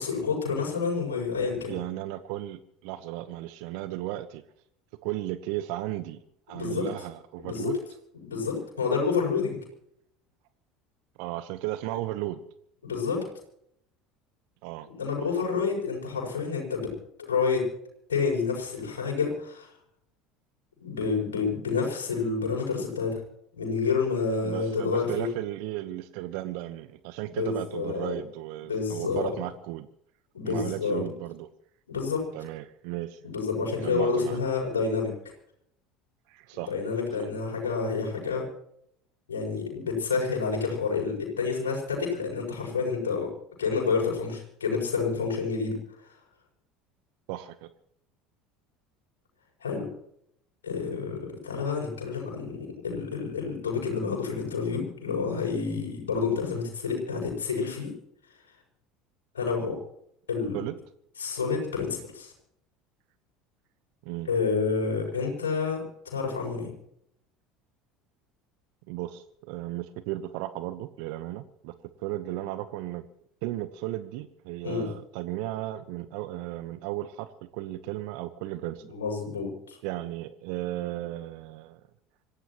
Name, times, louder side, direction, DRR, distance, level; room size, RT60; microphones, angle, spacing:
voice 1, 0.0-1.7 6.5-6.9 7.4-7.7 8.3-9.6 12.8-13.2 14.9-16.9 17.2-17.7 18.1-19.7 20.8-23.2 23.6-25.3 27.4-28.1 28.7-29.3 30.3-31.0 31.9-32.2 33.2-35.1 36.5-38.5 39.3-43.3 43.6-45.8 46.0-46.1 49.6-49.9 50.6-57.9 59.3-59.8 60.3-60.6 61.2-62.3 64.2-65.8 66.0-66.7 74.6-74.9 78.9-79.8, left 5 dB, 80° left, -1 dB, 6.7 m, -29 dB
voice 2, 1.7-4.4 5.0-6.2 6.5-7.8 11.2-12.4 14.6-14.9 15.2-15.7 24.4-29.9 30.4-31.5 32.3-33.2 33.8-34.4 36.3-36.7 47.3-47.7 60.5-60.7 64.0-64.3 68.9-73.0 73.4-78.9 79.8-81.8, right 15 dB, 65° right, 12 dB, 1.0 m, -35 dB
26.0 x 16.5 x 3.1 m, 0.71 s
figure-of-eight pair, 70°, 0 cm